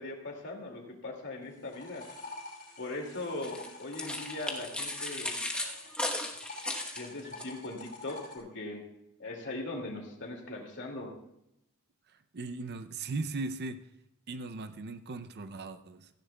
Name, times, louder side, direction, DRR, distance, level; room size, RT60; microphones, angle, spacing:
voice 1, 0.0-2.0 2.8-5.3 6.9-8.8 9.2-11.1, left 2 dB, 55° left, 1 dB, 2.3 m, -40 dB
sound 1, 1.4-6.0 6.3-8.4, left 3 dB, 40° left, 5.5 m, -47 dB
sound 2, 3.4-7.5, left 1 dB, 5° left, 1.1 m, -36 dB
voice 2, 12.3-13.8 14.3-16.1, right 3 dB, 50° right, 10 dB, 0.5 m, -38 dB
17.0 x 15.0 x 2.3 m, 0.83 s
head